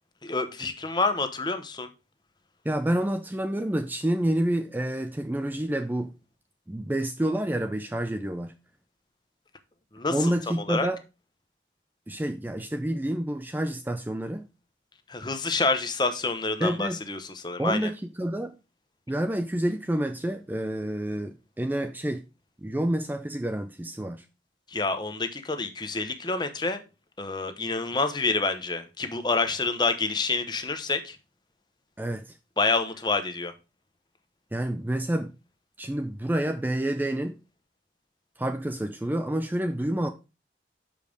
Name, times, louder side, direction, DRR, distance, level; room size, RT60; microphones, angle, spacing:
voice 1, 0.2-1.9 9.9-10.9 15.1-17.9 24.7-26.8 27.2-31.2 32.6-33.5, left 3 dB, 25° left, 0.8 m, -28 dB
voice 2, 2.6-6.1 6.7-8.6 10.1-11.0 12.1-14.5 16.6-17.0 17.6-18.6 19.1-22.3 22.6-24.2 32.0-32.4 34.5-35.3 35.8-37.4 38.4-40.1, right 1 dB, 10° right, 0.4 m, -28 dB
6.5 x 5.2 x 5.2 m
head